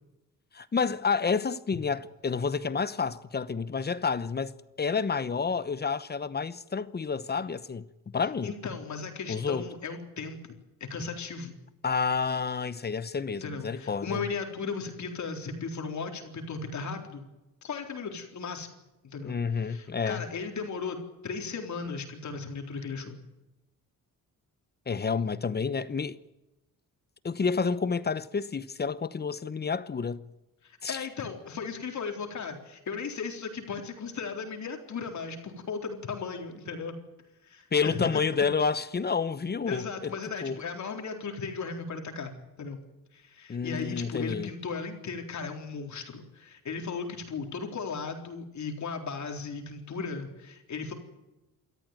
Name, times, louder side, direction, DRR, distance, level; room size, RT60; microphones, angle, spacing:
voice 1, 0.5-4.5 4.8-7.9 8.1-8.5 9.3-9.6 11.8-14.2 19.2-20.2 24.9-26.2 27.2-30.2 30.8-31.0 37.7-40.1 40.4-40.6 43.5-44.5, left 5 dB, 30° left, 0.9 m, -29 dB
voice 2, 8.4-11.6 13.4-17.2 17.6-18.7 19.0-21.0 21.2-23.2 30.6-37.0 37.4-38.2 39.7-42.8 43.1-50.9, left 5 dB, 55° left, 3.9 m, -36 dB
27.5 x 14.0 x 9.2 m
cardioid pair, 120°, 35 cm